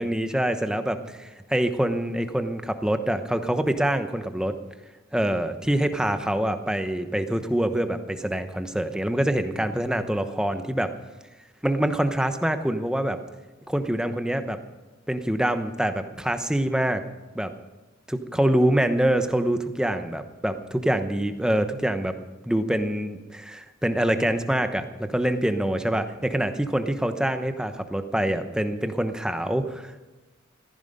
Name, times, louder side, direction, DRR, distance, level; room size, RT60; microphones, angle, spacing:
voice 1, 0.0-4.5 5.1-10.9 11.6-13.2 13.7-14.6 15.1-17.0 17.3-17.5 18.1-22.2 22.5-30.0, right 1 dB, 5° right, 8 dB, 0.9 m, -25 dB
15.0 x 14.5 x 5.3 m, 1.1 s
head